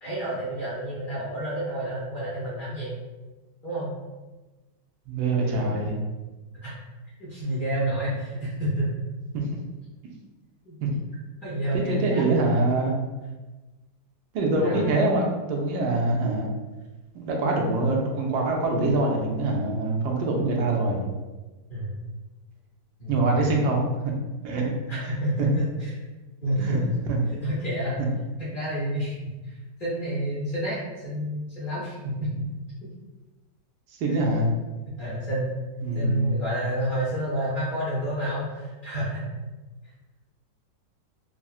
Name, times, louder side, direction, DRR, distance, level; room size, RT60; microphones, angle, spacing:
voice 1, 0.0-3.0 3.6-3.9 5.4-5.8 6.5-6.7 7.2-8.9 10.7-10.8 11.4-12.3 14.6-14.8 21.7-21.9 23.0-23.7 24.9-25.9 26.4-26.9 27.4-28.0 28.4-32.3 34.1-34.2 35.0-35.5 35.9-39.4, right 1 dB, 65° left, -9 dB, 0.5 m, -29 dB
voice 2, 5.1-6.0 9.3-9.6 10.8-10.9 11.7-13.0 14.3-16.5 17.1-21.1 23.1-23.8 24.4-24.7 25.4-25.5 26.6-26.8 27.1-27.2 28.0-28.1 34.0-34.5 35.8-36.3, right 2 dB, 75° right, 0 dB, 1.1 m, -24 dB
3.7 x 2.1 x 2.3 m, 1.2 s
omnidirectional pair, 1.9 m